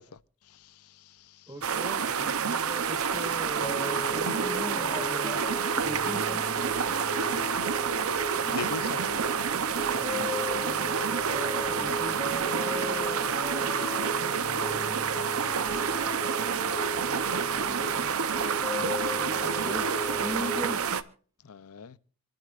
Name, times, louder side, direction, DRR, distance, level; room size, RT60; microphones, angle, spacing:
voice 1, 0.0-1.5 8.4-9.2 21.4-22.0, left 6 dB, 80° left, 0.7 m, -41 dB
voice 2, 1.5-6.7 7.1-7.7 11.2-15.6 19.3-20.8, equal, 15° right, 2.7 m, -40 dB
sound 1, 1.6-21.0, right 6 dB, 70° right, 0.8 m, -29 dB
sound 2, 3.6-20.8, left 1 dB, 25° left, 1.9 m, -37 dB
27.5 x 12.0 x 2.5 m
head